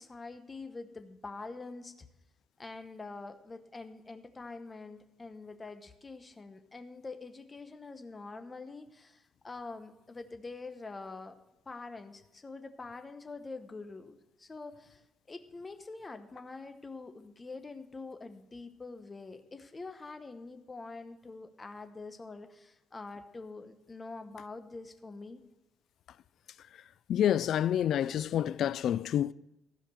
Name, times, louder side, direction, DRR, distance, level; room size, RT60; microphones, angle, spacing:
voice 1, 0.0-2.1 2.6-11.4 11.7-25.4, left 3 dB, 20° left, 0.9 m, -45 dB
voice 2, 27.1-29.3, left 10 dB, 60° left, 0.3 m, -28 dB
15.0 x 5.0 x 6.2 m
cardioid pair, 155°, 0 cm